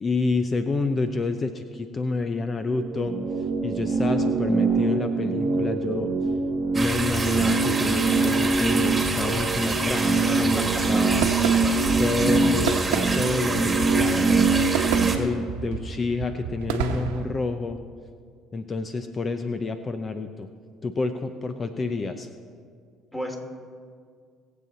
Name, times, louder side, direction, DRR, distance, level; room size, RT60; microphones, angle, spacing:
voice 1, 0.0-3.2 3.6-6.1 6.7-11.3 12.0-14.5 15.1-17.8 18.5-20.5 20.8-22.3, left 3 dB, 35° left, 8 dB, 0.7 m, -28 dB
sound 1, 2.6-15.2, right 3 dB, 50° right, 1.3 m, -24 dB
sound 2, 6.7-15.2, right 3 dB, 20° right, 1.8 m, -28 dB
voice 2, 10.4-10.9 23.1-23.4, equal, 15° left, 2 dB, 2.8 m, -34 dB
sound 3, 10.4-17.3, right 7 dB, 85° right, 1.0 m, -31 dB
21.5 x 7.7 x 4.1 m, 2.1 s
supercardioid pair, 70°, 0 cm